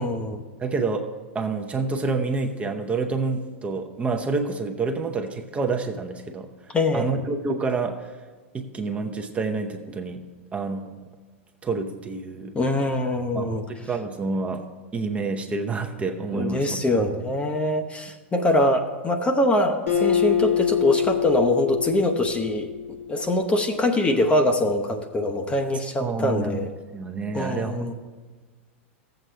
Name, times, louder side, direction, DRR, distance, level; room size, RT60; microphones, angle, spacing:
voice 1, 0.0-0.4 6.7-7.2 12.5-13.6 16.3-22.7 23.1-26.7 27.3-27.9, left 1 dB, 15° left, 5 dB, 0.8 m, -23 dB
voice 2, 0.6-8.1 8.5-10.2 10.5-10.9 11.6-12.5 13.3-14.6 14.9-16.8 26.0-26.7 26.9-27.9, right 4 dB, 20° right, 3 dB, 0.8 m, -28 dB
Acoustic guitar, 19.9-23.4, left 9 dB, 85° left, 2.2 m, -25 dB
14.0 x 7.8 x 3.3 m, 1.3 s
hypercardioid pair, 105°, 7 cm